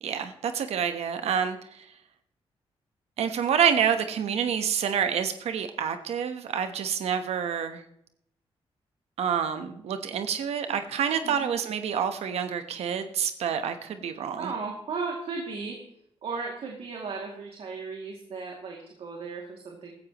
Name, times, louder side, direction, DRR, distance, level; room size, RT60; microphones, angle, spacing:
voice 1, 0.0-1.8 3.2-7.8 9.2-14.5, right 8 dB, 85° right, 8 dB, 1.1 m, -28 dB
voice 2, 11.2-11.5 14.4-15.8 16.2-20.0, right 4 dB, 65° right, 0 dB, 2.5 m, -35 dB
16.5 x 14.0 x 3.0 m, 0.71 s
cardioid pair, 115°, 10 cm